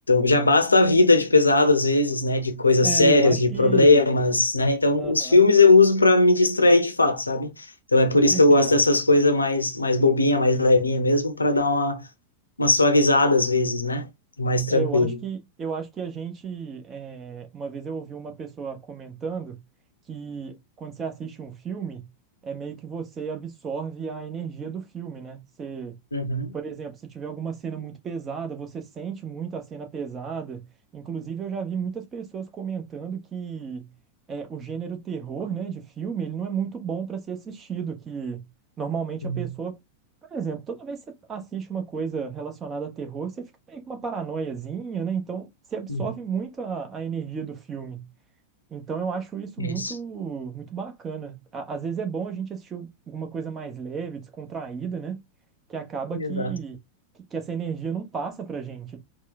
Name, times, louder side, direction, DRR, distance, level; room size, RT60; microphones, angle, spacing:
voice 1, 0.1-7.5 7.9-12.0 12.6-14.1 14.4-15.2 26.1-26.5 39.2-39.5 45.9-46.1 49.6-50.0 56.2-56.5, left 2 dB, 80° left, 0.7 m, -19 dB
voice 2, 2.8-4.2 5.0-5.4 8.1-8.7 14.7-19.6 20.1-22.1 22.4-25.9 26.5-30.7 30.9-33.9 34.3-38.5 38.8-39.8 40.3-41.0 41.3-48.1 48.7-55.2 55.7-56.8 57.3-59.0, right 6 dB, 25° right, 1.0 m, -33 dB
4.2 x 2.3 x 4.0 m
figure-of-eight pair, 90°, 0 cm